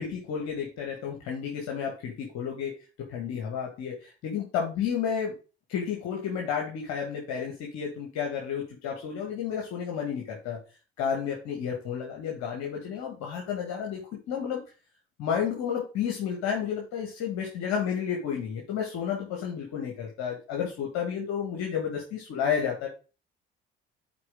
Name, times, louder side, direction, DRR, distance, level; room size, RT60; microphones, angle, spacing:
voice 1, 0.0-2.7 3.1-4.0 4.2-5.3 5.7-10.6 11.0-14.0 14.3-14.6 15.2-22.9, left 7 dB, 65° left, 0 dB, 1.8 m, -31 dB
9.6 x 4.4 x 3.8 m, 0.33 s
hypercardioid pair, 55°, 29 cm